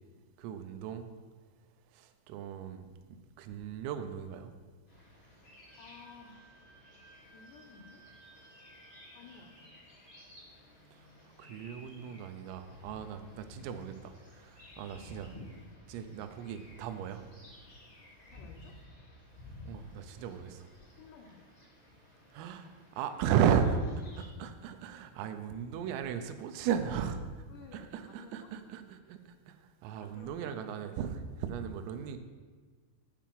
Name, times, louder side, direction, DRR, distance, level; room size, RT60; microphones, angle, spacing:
voice 1, 0.4-1.1 1.9-4.5 10.9-15.4 15.9-17.2 19.6-20.7 22.3-23.8 24.4-27.3 27.7-32.2, right 8 dB, 90° right, 8 dB, 3.3 m, -35 dB
sound 1, 4.9-24.3, left 2 dB, 40° left, 0.7 m, -54 dB
Wind instrument woodwind instrument, 5.7-9.6, right 3 dB, 70° right, 1.9 m, -60 dB
voice 2, 5.8-6.6 7.2-8.0 9.1-9.7 14.9-15.3 18.3-18.7 21.0-21.5 27.5-28.5 30.0-30.6, left 5 dB, 90° left, 2 dB, 2.4 m, -54 dB
8.8 x 4.7 x 7.5 m, 1.4 s
omnidirectional pair, 5.7 m